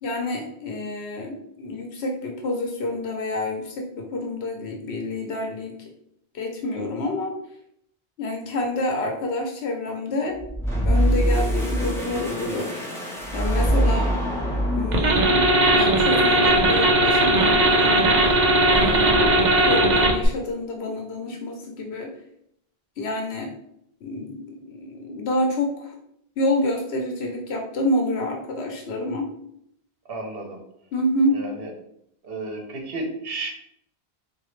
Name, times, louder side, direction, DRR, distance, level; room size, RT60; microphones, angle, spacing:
voice 1, 0.0-5.9 6.3-7.4 8.2-10.4 10.8-12.7 13.3-14.1 14.7-15.5 15.7-18.4 18.7-22.2 23.0-23.5 24.0-25.9 26.4-29.3 30.9-31.4, left 1 dB, 80° left, 1 dB, 0.9 m, -28 dB
sound 1, 10.4-15.6, equal, 5° left, 0.8 m, -23 dB
sound 2, 14.9-20.3, right 1 dB, 50° right, 0.7 m, -18 dB
voice 2, 30.1-30.6 31.3-31.7 32.2-33.5, right 2 dB, 70° right, 1 dB, 1.1 m, -32 dB
3.9 x 2.6 x 3.1 m, 0.73 s
omnidirectional pair, 1.1 m